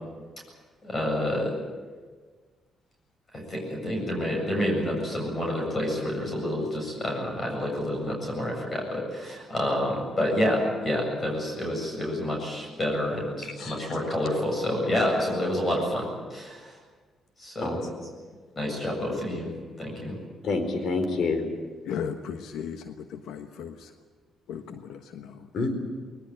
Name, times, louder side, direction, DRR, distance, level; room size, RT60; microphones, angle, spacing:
voice 1, 0.8-1.5 3.3-16.8 17.4-17.9 18.6-19.5 19.8-20.2, left 1 dB, 35° left, 1 dB, 7.7 m, -28 dB
voice 2, 13.6-14.0 17.6-17.8 20.4-21.4 25.5-25.7, left 3 dB, 65° left, 8 dB, 4.3 m, -28 dB
voice 3, 21.8-23.9 24.5-25.6, left 7 dB, 85° left, 7 dB, 1.3 m, -36 dB
21.0 x 19.5 x 8.9 m, 1.5 s
cardioid pair, 90°, 0 cm